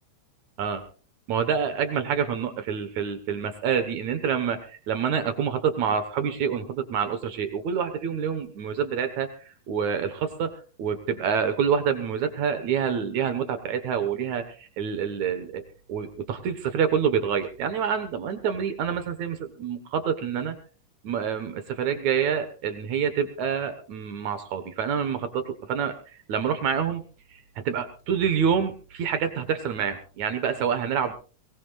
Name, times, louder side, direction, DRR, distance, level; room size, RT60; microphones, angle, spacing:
voice 1, 1.3-9.3 9.7-20.6 21.0-26.0 26.3-27.0 27.6-31.1, right 7 dB, 70° right, 9 dB, 2.5 m, -27 dB
22.0 x 18.5 x 2.4 m, 0.36 s
omnidirectional pair, 3.6 m